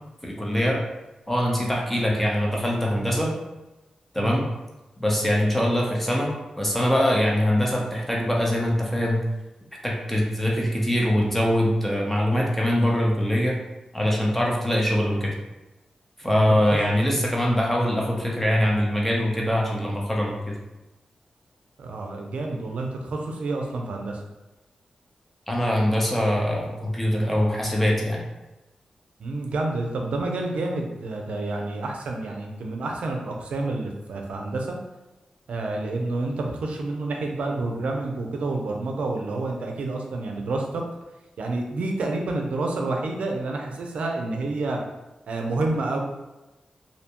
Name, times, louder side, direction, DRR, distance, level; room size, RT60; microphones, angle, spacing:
voice 1, 0.2-0.8 1.3-3.3 4.1-4.4 5.0-6.3 6.6-9.2 9.8-13.6 13.9-15.4 16.2-20.5 25.5-28.2, equal, 10° left, -2 dB, 0.7 m, -23 dB
voice 2, 21.8-24.2 29.2-34.8 35.5-40.8 41.4-44.8 45.3-46.0, right 2 dB, 85° right, 1 dB, 0.4 m, -29 dB
2.6 x 2.1 x 2.8 m, 1.0 s
cardioid pair, 65°, 2 cm